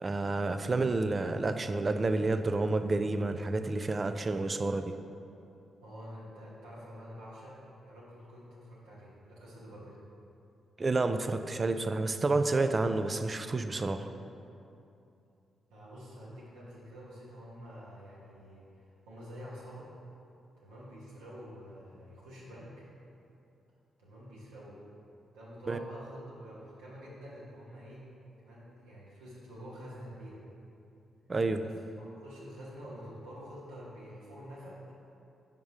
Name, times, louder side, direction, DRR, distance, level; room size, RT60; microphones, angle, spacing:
voice 1, 0.0-4.9 10.8-14.1 25.7-25.8 31.3-31.6, right 3 dB, 40° right, 9 dB, 0.3 m, -29 dB
voice 2, 5.8-10.0 15.7-19.9 20.6-22.9 24.0-24.8 25.3-28.1 28.4-30.4 31.6-31.7 32.0-34.8, equal, 90° right, -7 dB, 1.1 m, -48 dB
4.7 x 3.7 x 5.4 m, 2.7 s
hypercardioid pair, 45°, 0 cm